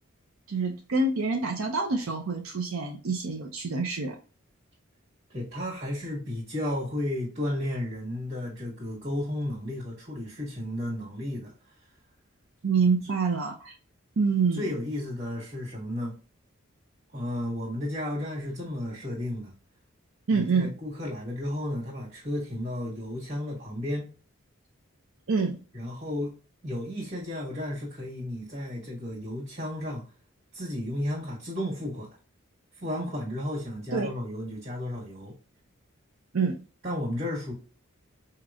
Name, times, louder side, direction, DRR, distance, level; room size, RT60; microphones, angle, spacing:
voice 1, 0.5-4.2 12.6-13.7 14.2-14.7 20.3-20.7 25.3-25.6 33.9-34.1 36.3-36.5, right 4 dB, 90° right, 2 dB, 0.6 m, -26 dB
voice 2, 5.3-11.5 13.0-13.1 14.5-16.1 17.1-19.5 20.3-24.1 25.7-26.3 26.6-30.0 30.5-32.1 32.7-35.3 36.8-37.5, left 1 dB, 50° right, -9 dB, 1.7 m, -33 dB
4.9 x 2.9 x 2.4 m, 0.37 s
head